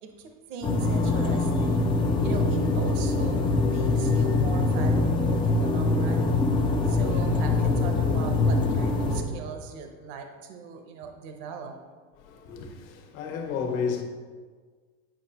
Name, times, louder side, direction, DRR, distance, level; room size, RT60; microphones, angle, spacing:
voice 1, 0.0-1.9 2.2-6.3 6.9-11.8, right 6 dB, 55° right, 0.9 m, -40 dB
sound 1, 0.6-9.2, left 3 dB, 10° left, 0.3 m, -23 dB
voice 2, 12.2-14.0, left 6 dB, 70° left, 1.3 m, -32 dB
9.2 x 5.0 x 2.9 m
supercardioid pair, 125°, 42 cm